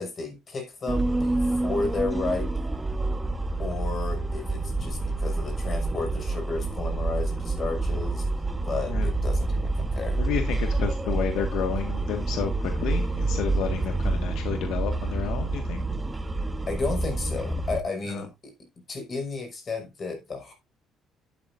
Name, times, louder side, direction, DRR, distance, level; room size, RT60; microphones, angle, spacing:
voice 1, 0.0-2.5 3.6-10.2 16.7-18.5 18.9-20.5, left 3 dB, 35° left, 5.5 m, -33 dB
sound 1, 0.9-17.8, right 2 dB, 15° right, 0.9 m, -28 dB
voice 2, 10.2-15.8 18.1-18.2, left 8 dB, 80° left, 1.8 m, -31 dB
12.5 x 8.8 x 2.7 m
cardioid pair, 110°, 0 cm